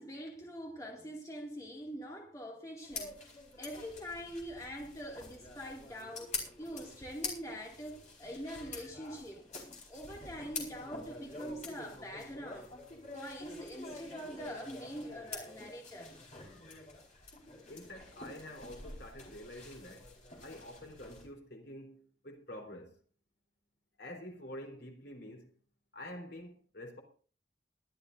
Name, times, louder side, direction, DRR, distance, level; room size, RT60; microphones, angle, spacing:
voice 1, 0.0-3.2 3.6-9.5 9.9-12.7 13.0-16.1, equal, 20° left, 2.3 m, -44 dB
sound 1, 2.8-21.3, left 4 dB, 40° left, 4.6 m, -47 dB
voice 2, 8.5-8.9 16.3-16.9 17.7-20.1 20.4-23.0 24.0-25.5 25.9-27.0, left 1 dB, 70° left, 3.7 m, -48 dB
22.0 x 12.5 x 2.6 m
head